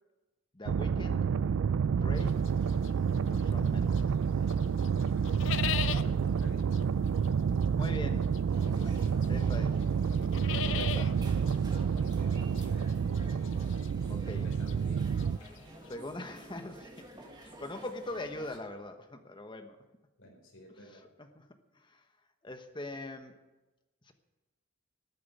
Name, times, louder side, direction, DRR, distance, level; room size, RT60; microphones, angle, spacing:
voice 1, 0.5-1.3 1.9-2.4 3.3-4.1 7.7-8.4 8.8-9.0 9.3-9.8 10.4-11.2 11.6-11.8 14.1-14.5 15.9-16.9 17.4-19.8 21.2-21.4 21.7-22.0 22.4-23.4 24.1-24.2, left 1 dB, 20° left, 7 dB, 1.1 m, -42 dB
sound 1, 0.7-15.4, right 6 dB, 75° right, 0.4 m, -29 dB
sound 2, 2.2-4.2 4.5-15.9, left 8 dB, 60° left, 0.6 m, -40 dB
voice 2, 5.5-6.6 11.9-13.0 14.3-15.1 15.7-15.8 20.2-21.1, equal, 80° left, -1 dB, 4.8 m, -53 dB
sound 3, 8.5-18.6, right 1 dB, 20° right, 1.5 m, -51 dB
13.5 x 7.7 x 9.2 m, 1.1 s
head